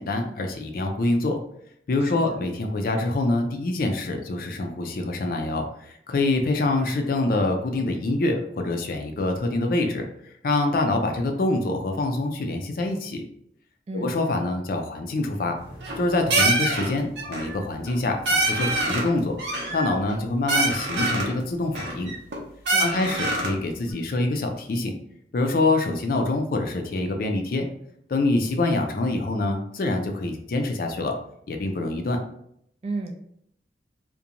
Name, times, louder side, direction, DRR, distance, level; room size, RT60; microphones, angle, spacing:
voice 1, 0.0-1.4 1.9-13.2 13.9-15.5 16.0-19.4 19.7-22.1 22.8-24.9 25.3-27.7 28.1-31.2 31.5-32.2, left 2 dB, 55° left, 4 dB, 0.4 m, -25 dB
voice 2, 2.0-2.4 13.9-14.2 22.7-23.2 32.8-33.1, right 2 dB, 35° right, 4 dB, 0.4 m, -33 dB
sound 1, 15.6-16.0 16.3-16.9 17.2-17.5 17.9-18.0 18.2-19.1 19.4-20.2 20.5-21.3 21.7-22.4 22.6-23.6, right 2 dB, 85° right, 0.7 m, -25 dB
2.5 x 2.2 x 2.8 m, 0.70 s
head